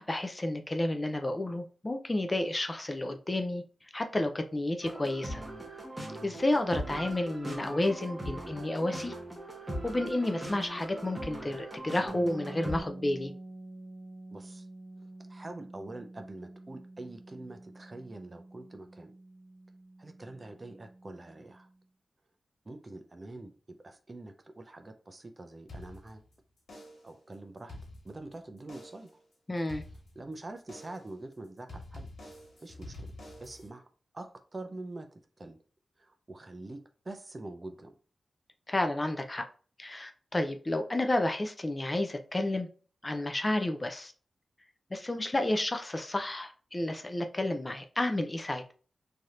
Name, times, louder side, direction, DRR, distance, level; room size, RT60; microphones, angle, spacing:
voice 1, 0.0-5.4 6.2-9.1 9.8-13.3 29.5-29.8 38.7-39.4 39.8-42.7 43.0-44.1 44.9-48.7, left 1 dB, 25° left, 0.4 m, -31 dB
sound 1, 4.8-12.8, right 1 dB, 10° right, 1.1 m, -40 dB
sound 2, 12.1-21.8, right 2 dB, 50° right, 1.0 m, -48 dB
voice 2, 14.3-14.7 15.3-19.1 20.0-21.7 22.6-26.2 27.0-27.8 28.0-29.1 30.2-32.1 32.6-33.1 33.4-33.9 34.1-35.6 36.0-37.9, right 2 dB, 35° right, 0.5 m, -45 dB
sound 3, 25.7-26.3 26.7-27.2 27.6-28.3 28.7-29.2 29.7-30.3 30.7-31.2 31.7-33.7, left 1 dB, 85° left, 1.4 m, -47 dB
3.3 x 2.7 x 2.4 m
wide cardioid pair, 100°, 0 cm